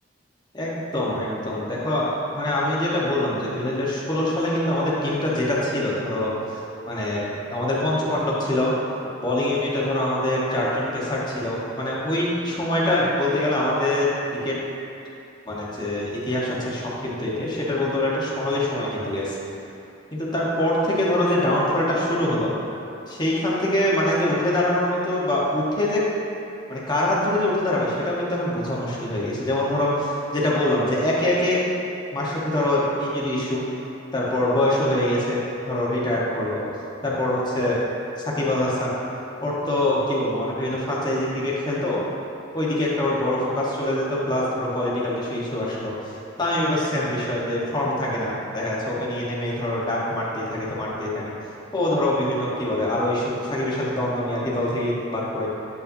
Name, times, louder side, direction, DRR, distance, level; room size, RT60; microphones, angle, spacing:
voice 1, 0.5-2.1 2.3-6.3 6.9-8.7 9.2-14.6 15.5-19.4 20.1-22.5 23.1-26.0 26.7-31.6 32.1-33.6 34.1-36.6 37.0-37.8 38.4-38.9 39.4-42.0 42.5-45.9 46.4-51.2 51.7-55.5, left 1 dB, 25° left, -6 dB, 1.1 m, -24 dB
8.0 x 5.4 x 2.6 m, 2.7 s
head